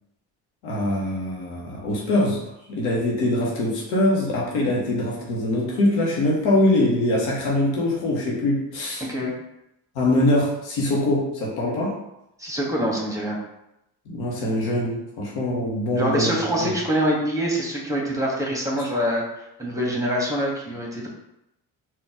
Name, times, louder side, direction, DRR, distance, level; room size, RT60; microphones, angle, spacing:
voice 1, 0.6-2.4 2.7-9.1 9.9-11.9 14.1-16.7, left 1 dB, 75° left, -3 dB, 1.2 m, -23 dB
voice 2, 9.0-9.3 12.4-13.4 15.9-19.2 19.6-21.1, equal, 5° right, -2 dB, 1.3 m, -25 dB
3.8 x 2.6 x 3.6 m, 0.85 s
hypercardioid pair, 50°, 48 cm